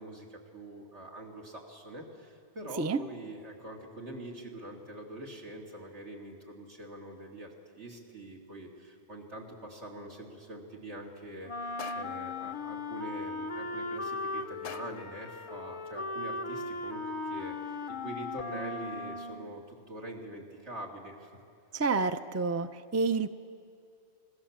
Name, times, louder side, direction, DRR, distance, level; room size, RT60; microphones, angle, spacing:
voice 1, 0.0-7.5 7.8-11.5 11.9-21.3, right 1 dB, 75° right, -1 dB, 3.2 m, -44 dB
Wind instrument woodwind instrument, 11.5-19.6, left 2 dB, 35° left, 0.6 m, -37 dB
sound 1, 11.8-12.4 14.6-15.2, left 8 dB, 80° left, 1.0 m, -45 dB
voice 2, 21.7-23.3, right 4 dB, 20° right, 10 dB, 0.4 m, -29 dB
26.0 x 18.5 x 7.3 m, 2.4 s
omnidirectional pair, 1.2 m